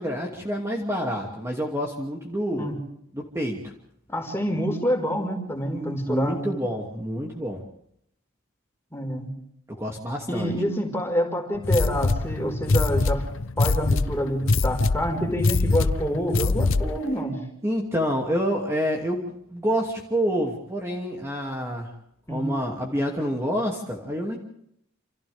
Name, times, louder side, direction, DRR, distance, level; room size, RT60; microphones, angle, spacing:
voice 1, 0.0-2.7 3.1-3.7 5.7-7.6 9.7-10.5 17.6-21.9 22.3-24.4, equal, 15° right, 0 dB, 2.6 m, -28 dB
voice 2, 4.1-6.5 8.9-9.3 10.3-13.2 13.6-17.4 22.3-22.5, equal, 10° left, 2 dB, 5.1 m, -27 dB
sound 1, 11.6-17.1, left 3 dB, 65° left, 0.7 m, -24 dB
28.5 x 28.5 x 3.6 m, 0.71 s
head